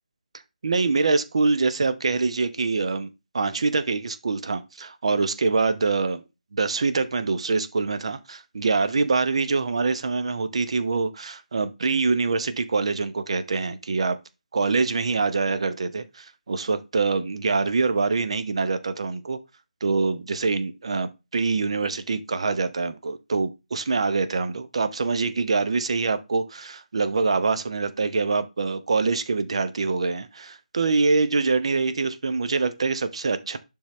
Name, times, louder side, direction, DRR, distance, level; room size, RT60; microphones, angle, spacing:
voice 1, 0.6-3.1 3.3-6.2 6.5-14.2 14.5-19.4 19.8-33.6, right 4 dB, 45° right, 0.9 m, -24 dB
11.5 x 3.8 x 3.1 m
figure-of-eight pair, 150°, 4 cm